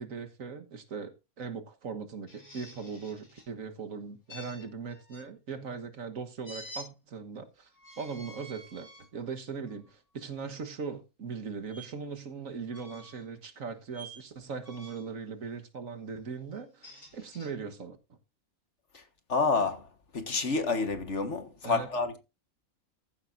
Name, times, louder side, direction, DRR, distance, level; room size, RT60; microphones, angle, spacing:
voice 1, 0.0-7.7 8.0-18.0 21.6-21.9, right 5 dB, 65° right, 1.7 m, -39 dB
sound 1, 2.3-3.5 4.3-5.3 6.4-6.9 7.7-9.1 9.7-9.9 11.7-11.9 12.7-13.3 13.9-14.2 14.6-15.1 16.6-17.5, equal, 75° left, 5.8 m, -49 dB
voice 2, 19.3-22.2, left 4 dB, 50° left, 1.8 m, -29 dB
14.5 x 11.5 x 2.6 m
omnidirectional pair, 1.5 m